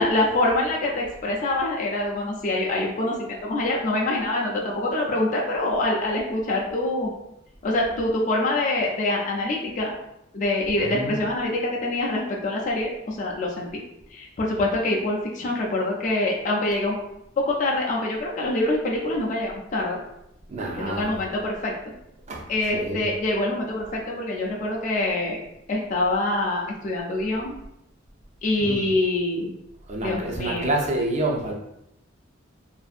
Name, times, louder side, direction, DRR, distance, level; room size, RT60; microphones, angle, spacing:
voice 1, 0.0-7.1 7.6-9.9 10.3-13.8 14.1-16.9 17.4-20.0 20.8-21.8 22.5-25.4 25.7-27.5 28.4-29.5 30.0-30.7, left 2 dB, 40° left, -2 dB, 0.4 m, -25 dB
voice 2, 10.7-11.2 20.5-21.2 22.3-23.1 28.6-28.8 29.9-31.5, right 2 dB, 35° right, 0 dB, 0.4 m, -28 dB
2.6 x 2.5 x 2.4 m, 0.81 s
head